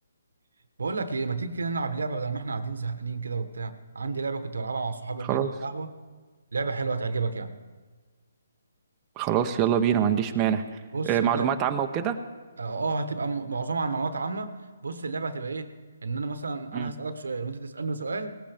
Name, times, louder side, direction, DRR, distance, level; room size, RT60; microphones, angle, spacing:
voice 1, 0.8-6.0 6.5-7.5 10.9-11.5 12.6-14.5 14.8-15.7 16.0-18.3, right 4 dB, 80° right, 11 dB, 1.1 m, -31 dB
voice 2, 9.2-10.6 11.0-12.2 16.7-16.9, right 9 dB, 20° right, 5 dB, 0.7 m, -24 dB
18.0 x 15.0 x 3.5 m, 1.4 s
hypercardioid pair, 150°, 0 cm